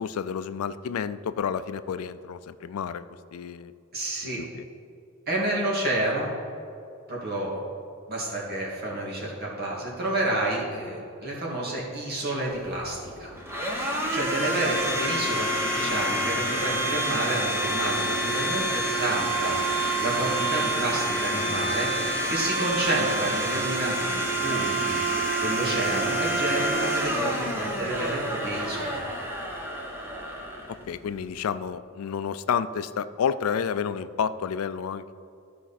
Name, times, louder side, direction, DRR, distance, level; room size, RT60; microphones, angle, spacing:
voice 1, 0.0-3.1 3.3-3.7 4.4-4.6 30.9-35.1, left 7 dB, 90° left, 14 dB, 0.4 m, -30 dB
voice 2, 3.9-4.4 5.3-6.3 7.1-7.6 8.1-13.3 13.8-21.9 22.3-29.0, right 1 dB, 50° right, -4 dB, 2.2 m, -30 dB
Domestic sounds home sounds, 12.5-31.3, right 1 dB, 10° right, 1.0 m, -28 dB
13.5 x 4.9 x 4.2 m, 2.5 s
head